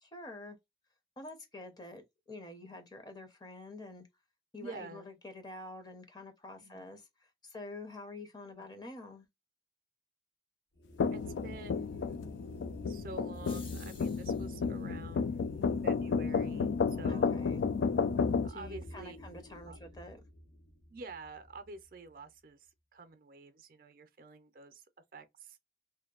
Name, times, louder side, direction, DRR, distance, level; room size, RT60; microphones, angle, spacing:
voice 1, 0.0-0.6 1.2-4.1 4.5-7.0 7.4-9.3 17.1-17.6 18.5-20.2, left 2 dB, 25° left, 0.6 m, -47 dB
voice 2, 4.6-5.1 6.6-6.9 8.5-8.7 11.1-12.2 12.8-15.5 15.8-17.4 18.4-19.2 19.6-19.8 20.9-24.9 25.1-25.6, right 3 dB, 55° right, 0.4 m, -49 dB
sound 1, 10.7-22.1, left 1 dB, 70° left, 0.9 m, -49 dB
sound 2, 11.0-18.5, left 5 dB, 90° left, 0.3 m, -32 dB
sound 3, 13.3-14.7, left 4 dB, 55° left, 1.2 m, -53 dB
2.6 x 2.2 x 2.3 m
head